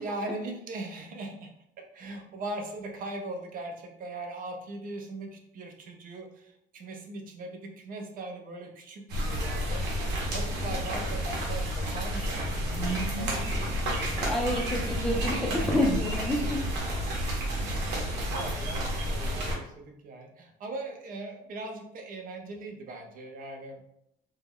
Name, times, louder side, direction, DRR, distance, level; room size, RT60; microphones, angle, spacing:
voice 1, 0.0-10.0 10.3-13.7 14.5-14.6 15.3-15.9 17.6-23.8, right 2 dB, 55° right, 3 dB, 0.6 m, -40 dB
sound 1, 9.1-19.5, equal, 85° right, 0.8 m, -30 dB
voice 2, 14.2-16.6, left 1 dB, ahead, -1 dB, 0.4 m, -28 dB
2.2 x 2.1 x 3.5 m, 0.75 s
cardioid pair, 110°, 17 cm